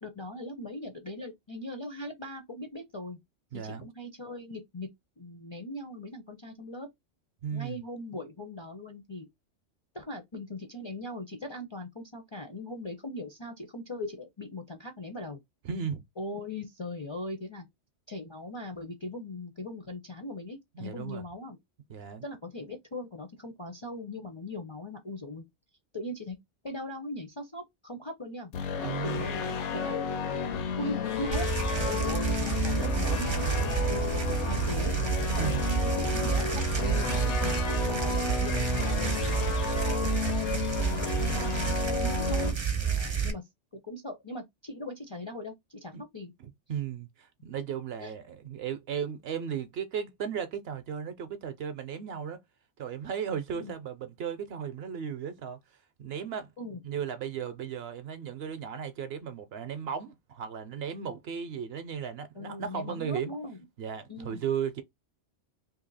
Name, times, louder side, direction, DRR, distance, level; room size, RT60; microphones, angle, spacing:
voice 1, 0.0-3.2 3.5-4.9 5.2-6.9 7.5-9.3 9.9-15.4 16.2-17.7 18.1-21.6 22.2-25.4 25.9-26.4 26.6-28.5 29.0-30.0 30.8-31.5 31.9-34.9 35.3-36.4 36.8-42.6 43.2-43.4 43.7-46.3 48.0-48.1 53.5-53.8 56.6-56.8 62.4-63.6 64.1-64.4, left 1 dB, 35° left, 0.5 m, -39 dB
voice 2, 3.5-3.9 7.4-7.8 15.6-16.0 20.7-21.2 21.9-22.2 28.8-29.2 35.4-35.7 42.8-43.2 45.9-46.0 46.4-52.4 52.8-55.6 56.0-56.5 56.8-63.3 63.8-64.8, right 8 dB, 65° right, 0.8 m, -35 dB
sound 1, 28.5-42.5, left 6 dB, 70° left, 1.0 m, -32 dB
sound 2, 31.3-43.3, right 6 dB, 35° right, 0.5 m, -30 dB
2.8 x 2.7 x 3.9 m
omnidirectional pair, 1.2 m